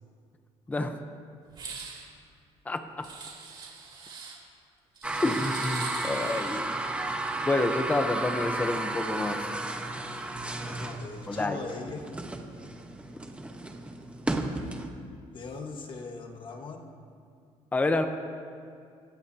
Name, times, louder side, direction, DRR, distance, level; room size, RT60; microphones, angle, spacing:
voice 1, 0.7-1.0 2.7-3.1 5.2-6.7 7.4-9.5 11.3-11.6 17.7-18.0, left 2 dB, 15° left, 6 dB, 0.8 m, -28 dB
sound 1, 1.5-2.0 3.0-4.4 5.0-6.7, right 5 dB, 40° right, 3.7 m, -42 dB
sound 2, 5.0-14.9, right 2 dB, 10° right, 1.1 m, -33 dB
voice 2, 10.6-12.1 15.3-16.9, left 3 dB, 45° left, 3 dB, 1.5 m, -40 dB
24.5 x 19.0 x 2.8 m, 2.3 s
cardioid pair, 150°, 12 cm